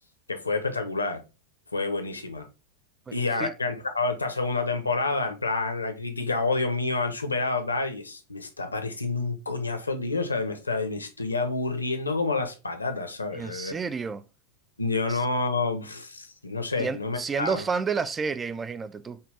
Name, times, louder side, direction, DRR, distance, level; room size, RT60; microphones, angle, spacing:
voice 1, 0.3-1.2 1.7-2.5 3.1-13.7 14.8-17.6, left 3 dB, 80° left, 0.8 m, -28 dB
voice 2, 3.1-3.5 13.3-14.2 15.1-15.2 16.8-19.2, right 5 dB, 15° right, 0.3 m, -30 dB
5.4 x 2.4 x 3.4 m
figure-of-eight pair, 90°, 0 cm